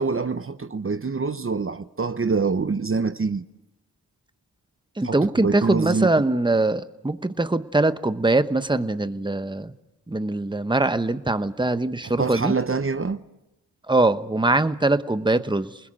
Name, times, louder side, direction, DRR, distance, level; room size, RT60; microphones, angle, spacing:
voice 1, 0.0-3.4 5.0-6.1 12.0-13.2, right 4 dB, 35° right, 0.8 m, -25 dB
voice 2, 5.0-9.7 10.1-12.5 13.9-15.8, right 2 dB, 10° right, 1.0 m, -22 dB
28.5 x 20.5 x 7.6 m
wide cardioid pair, 80°, 36 cm